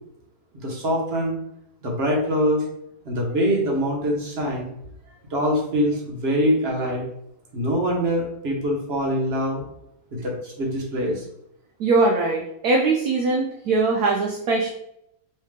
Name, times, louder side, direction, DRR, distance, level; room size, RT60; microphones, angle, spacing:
voice 1, 0.5-1.3 1.8-2.7 3.0-4.7 5.3-7.0 7.5-9.6 10.1-11.2, equal, 45° right, -1 dB, 0.8 m, -24 dB
voice 2, 11.8-14.7, right 3 dB, 75° right, 1 dB, 0.9 m, -21 dB
3.3 x 3.2 x 3.3 m, 0.77 s
omnidirectional pair, 2.0 m